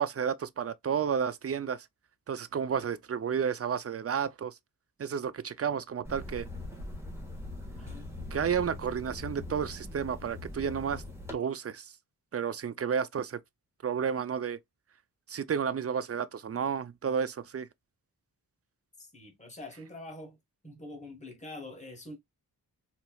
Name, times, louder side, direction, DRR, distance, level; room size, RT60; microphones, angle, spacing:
voice 1, 0.0-1.9 2.3-4.6 5.0-6.5 8.3-11.0 11.3-11.9 12.3-13.4 13.8-14.6 15.3-17.7, right 7 dB, 40° right, 0.4 m, -31 dB
sound 1, 6.0-11.3, left 2 dB, 5° right, 1.5 m, -41 dB
voice 2, 7.8-8.1 19.0-20.4 20.6-22.2, left 2 dB, 20° left, 1.4 m, -45 dB
4.2 x 2.9 x 2.3 m
wide cardioid pair, 95°, 38 cm